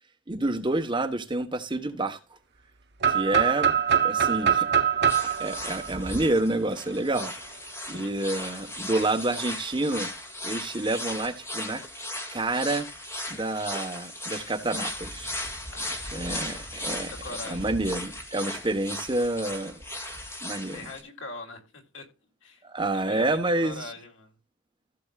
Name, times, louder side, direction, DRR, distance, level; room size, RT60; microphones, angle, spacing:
voice 1, 0.3-2.2 3.1-3.8 4.0-4.7 5.4-7.3 7.9-10.1 10.4-11.8 12.3-12.9 13.3-15.3 16.1-17.1 17.4-19.8 20.4-20.9 22.6-23.9, right 2 dB, 25° right, 1.2 m, -28 dB
sound 1, 3.0-6.8, right 8 dB, 60° right, 1.0 m, -24 dB
sound 2, 5.1-21.0, left 1 dB, 15° left, 2.1 m, -37 dB
voice 2, 15.7-16.4 16.9-17.7 20.7-22.1 22.4-22.6 22.9-24.3, left 2 dB, 80° left, 3.0 m, -42 dB
15.5 x 7.0 x 2.4 m
head